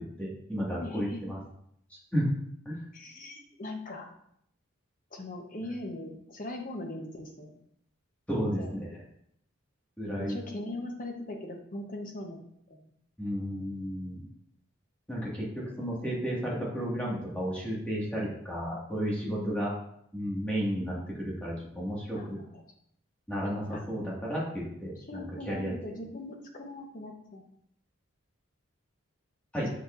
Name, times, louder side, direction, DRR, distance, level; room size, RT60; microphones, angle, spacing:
voice 1, 0.2-1.4 2.1-2.3 2.7-2.8 8.3-8.6 10.0-10.4 13.2-14.2 15.1-15.5 15.8-19.7 20.1-22.4 23.3-25.7 29.5-29.7, equal, 5° left, -6 dB, 1.9 m, -32 dB
voice 2, 0.8-1.2 2.9-4.1 5.1-7.5 8.3-8.7 10.2-12.4 12.7-12.9 19.2-19.6 22.2-22.6 23.7-23.8 25.1-27.4, left 1 dB, 40° left, 2 dB, 1.0 m, -40 dB
6.7 x 6.5 x 2.6 m, 0.71 s
head